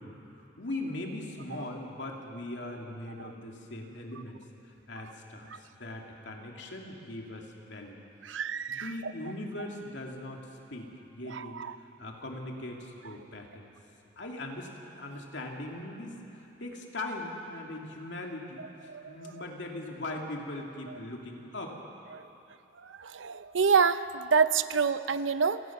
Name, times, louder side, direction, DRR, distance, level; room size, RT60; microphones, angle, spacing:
voice 1, 0.0-8.0 8.7-10.5 10.7-13.7 14.2-14.7 15.0-21.8, left 1 dB, 70° left, 0 dB, 2.6 m, -40 dB
voice 2, 8.2-9.1 11.3-11.7 18.9-19.3 22.1-22.2 22.8-25.6, right 5 dB, 80° right, 13 dB, 0.7 m, -27 dB
29.5 x 17.5 x 6.0 m, 3.0 s
head